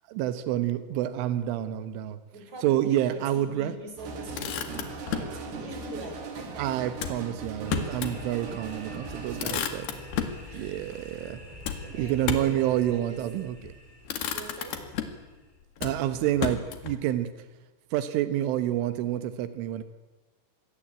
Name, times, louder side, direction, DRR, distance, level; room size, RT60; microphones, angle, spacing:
voice 1, 0.1-2.2 2.6-3.7 6.6-9.9 10.5-11.4 12.0-13.7 15.8-17.3 17.9-19.8, right 12 dB, 90° right, 12 dB, 3.7 m, -28 dB
voice 2, 2.3-7.0 9.5-9.7 10.5-10.7 11.8-13.2 14.3-14.8, right 2 dB, 35° right, 4 dB, 6.6 m, -43 dB
sound 1, 4.0-9.4, right 4 dB, 60° right, 5.0 m, -39 dB
Motor vehicle (road), 4.1-5.4 7.0-8.2 8.6-8.7 9.0-10.4 11.6-12.6 13.5-13.7 14.1-15.3 15.8-17.0, left 8 dB, 60° left, 3.7 m, -33 dB
sound 2, 7.7-15.6, equal, 10° right, 5.2 m, -47 dB
26.5 x 21.0 x 8.8 m, 1.2 s
omnidirectional pair, 5.5 m